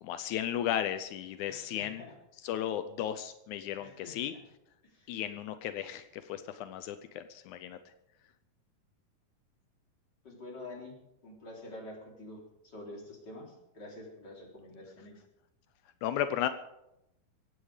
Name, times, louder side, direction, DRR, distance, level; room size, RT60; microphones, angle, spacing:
voice 1, 0.0-2.0 2.4-4.3 5.1-7.8 16.0-16.5, left 11 dB, 85° left, 10 dB, 1.7 m, -35 dB
voice 2, 1.4-2.1 3.8-4.4 4.8-5.1 10.2-11.0 11.2-15.1, left 2 dB, 30° left, -2 dB, 4.1 m, -47 dB
25.5 x 8.8 x 5.0 m, 0.85 s
omnidirectional pair, 4.3 m